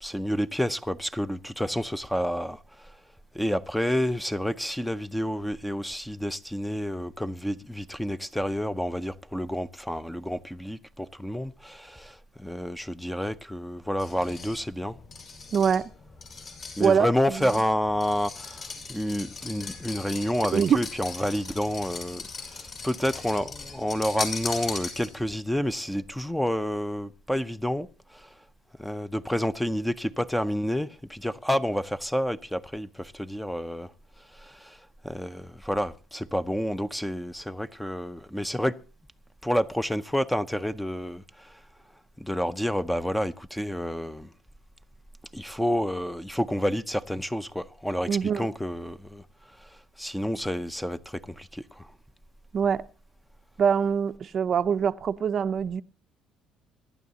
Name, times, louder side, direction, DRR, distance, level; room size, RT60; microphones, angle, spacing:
voice 1, 0.0-3.0 3.3-15.0 16.8-28.3 28.8-33.9 34.2-38.8 39.4-41.6 42.2-44.3 45.3-49.2 49.6-49.7 50.0-51.9, equal, 5° left, 0.6 m, -29 dB
sound 1, 14.0-25.4, left 4 dB, 45° left, 5.4 m, -39 dB
voice 2, 15.5-15.9 16.8-17.1 20.5-20.8 48.1-48.5 52.5-52.9 53.6-55.8, right 7 dB, 45° right, 0.5 m, -23 dB
26.0 x 11.5 x 2.8 m
cardioid pair, 115°, 0 cm